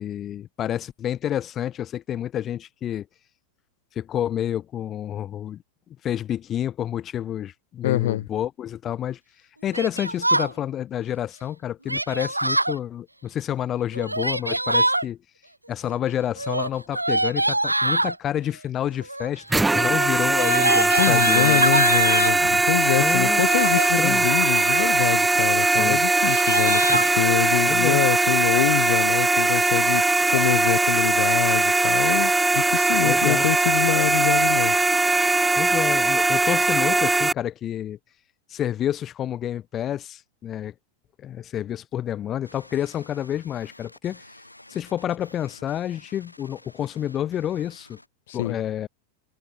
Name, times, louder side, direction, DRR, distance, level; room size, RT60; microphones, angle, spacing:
voice 1, 0.0-3.1 4.0-5.6 6.0-9.2 9.6-15.2 15.7-21.7 23.0-24.3 25.7-26.0 26.8-27.1 27.7-28.0 33.0-33.4 35.6-38.0 38.5-40.7 41.2-44.2 44.7-48.0 48.3-48.9, left 11 dB, 30° left, 2.3 m, -29 dB
voice 2, 7.8-8.2 21.0-30.0 30.3-34.7 48.3-48.6, left 14 dB, 55° left, 1.3 m, -25 dB
Yell, 9.7-10.5 11.9-12.8 13.9-15.0 16.4-18.2 19.0-19.4 19.7-22.4 23.3-23.9 24.4-25.0 25.4-25.5 25.7-25.9 26.2-27.1, right 1 dB, 85° right, 1.0 m, -24 dB
sound 1, 19.5-37.3, right 2 dB, 10° right, 0.8 m, -20 dB
sound 2, 42.4-48.1, left 1 dB, 85° left, 3.1 m, -50 dB
figure-of-eight pair, 90°, 0 cm